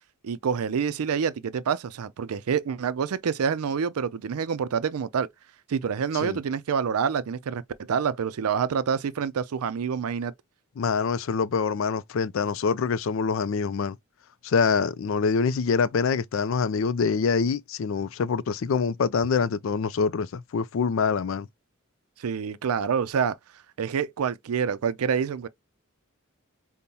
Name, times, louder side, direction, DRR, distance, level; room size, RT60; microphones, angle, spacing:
voice 1, 0.2-5.3 5.7-7.6 7.9-10.3 22.2-23.4 23.8-25.5, right 6 dB, 90° right, 0.4 m, -27 dB
voice 2, 10.8-14.0 14.4-21.5, left 5 dB, 60° left, 0.4 m, -25 dB
5.3 x 2.1 x 2.8 m
head